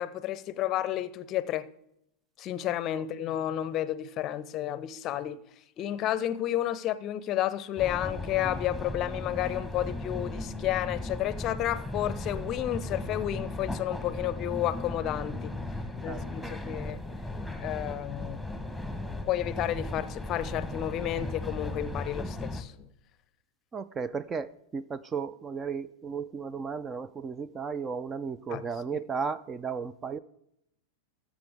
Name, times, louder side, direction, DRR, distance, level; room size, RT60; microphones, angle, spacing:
voice 1, 0.0-1.7 2.4-5.4 5.8-15.5 16.0-18.4 19.3-22.7 28.5-28.6 28.9-29.0, left 12 dB, 35° left, 0.6 m, -31 dB
sound 1, 7.8-22.6, left 2 dB, ahead, 1.2 m, -36 dB
voice 2, 16.1-16.5 23.7-30.2, right 5 dB, 20° right, 0.4 m, -35 dB
21.0 x 7.4 x 3.6 m
figure-of-eight pair, 90°, 0 cm